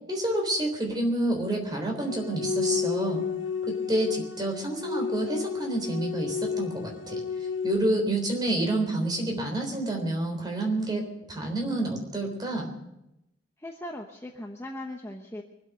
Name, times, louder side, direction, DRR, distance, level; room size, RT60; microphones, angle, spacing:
voice 1, 0.1-3.2 3.7-7.2 7.6-12.7, right 1 dB, 20° right, 1 dB, 3.7 m, -28 dB
sound 1, 2.0-7.8, left 6 dB, 75° left, 1.3 m, -32 dB
voice 2, 13.6-15.4, left 1 dB, 15° left, 2 dB, 0.9 m, -39 dB
24.0 x 8.2 x 6.6 m, 0.86 s
head